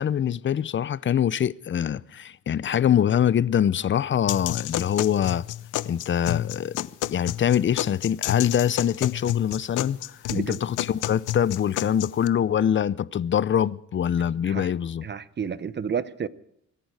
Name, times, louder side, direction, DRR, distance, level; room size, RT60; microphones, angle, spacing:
voice 1, 0.0-5.4 5.9-10.0 10.3-15.0, left 9 dB, 40° left, 0.6 m, -24 dB
sound 1, 4.3-12.3, left 14 dB, 85° left, 0.7 m, -30 dB
voice 2, 15.0-16.3, right 7 dB, 35° right, 0.8 m, -30 dB
25.0 x 11.0 x 4.9 m
cardioid pair, 90°, 30 cm